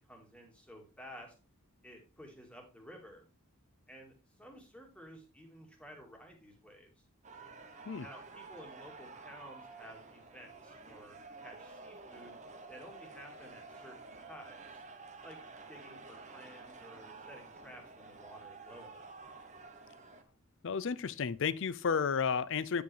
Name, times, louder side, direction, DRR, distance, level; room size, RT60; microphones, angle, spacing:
voice 1, 0.0-1.4 1.8-3.2 3.9-7.1 8.0-12.4 12.7-14.8 15.2-15.4 15.7-19.1, equal, 5° left, 2.0 m, -53 dB
sound 1, 7.2-20.2, right 3 dB, 30° right, 0.9 m, -51 dB
voice 2, 20.6-22.8, left 6 dB, 60° left, 0.5 m, -32 dB
9.1 x 5.1 x 3.3 m
head